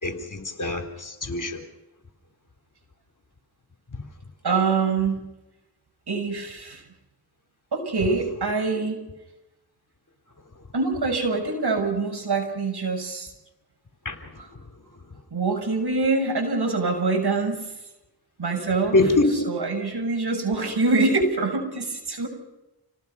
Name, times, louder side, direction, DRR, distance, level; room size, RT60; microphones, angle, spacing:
voice 1, 0.0-1.6 14.1-14.2 18.9-19.5, left 2 dB, 50° left, 6 dB, 3.7 m, -23 dB
voice 2, 4.4-5.2 6.1-6.8 7.7-9.0 10.7-13.3 14.4-14.5 15.3-17.6 18.4-19.0 19.4-22.3, right 3 dB, 70° right, 2 dB, 7.1 m, -24 dB
28.0 x 18.5 x 5.8 m, 0.98 s
cardioid pair, 50°, 40 cm